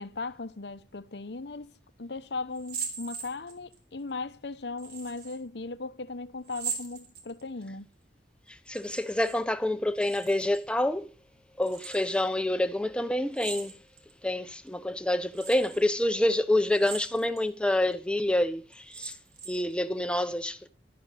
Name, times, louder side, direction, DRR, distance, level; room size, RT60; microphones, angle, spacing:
voice 1, 0.0-1.7 2.0-7.9, left 3 dB, 70° left, 0.9 m, -37 dB
sound 1, 2.5-3.8 4.8-5.4 6.4-7.6 8.6-9.4 9.6-10.6 11.6-12.2 13.3-14.1 14.7-14.8 15.3-15.8 16.7-17.4 17.9-18.0 18.7-19.7, right 6 dB, 60° right, 3.7 m, -40 dB
voice 2, 8.5-11.1 11.6-13.7 14.2-19.2 19.5-20.7, left 1 dB, 5° left, 0.9 m, -27 dB
12.5 x 9.5 x 6.6 m
head